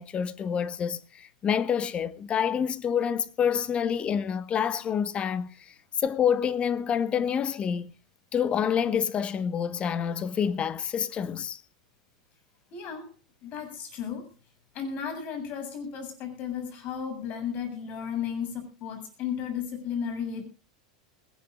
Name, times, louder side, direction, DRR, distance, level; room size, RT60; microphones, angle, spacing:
voice 1, 0.0-7.9 8.3-11.6, left 8 dB, 30° left, 1.3 m, -27 dB
voice 2, 12.7-13.1 13.4-14.3 14.7-20.4, left 7 dB, 50° left, 7.5 m, -34 dB
20.5 x 18.0 x 2.5 m
hypercardioid pair, 100°, 3 cm